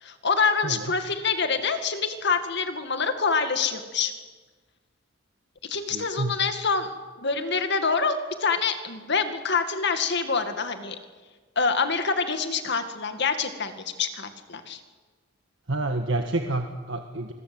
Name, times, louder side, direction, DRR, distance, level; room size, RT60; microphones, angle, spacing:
voice 1, 0.0-4.1 5.6-11.0 11.6-14.8, left 5 dB, 60° left, 8 dB, 2.2 m, -26 dB
voice 2, 5.9-6.4 15.7-17.3, right 2 dB, 65° right, 5 dB, 1.6 m, -29 dB
26.0 x 22.0 x 7.9 m, 1.4 s
head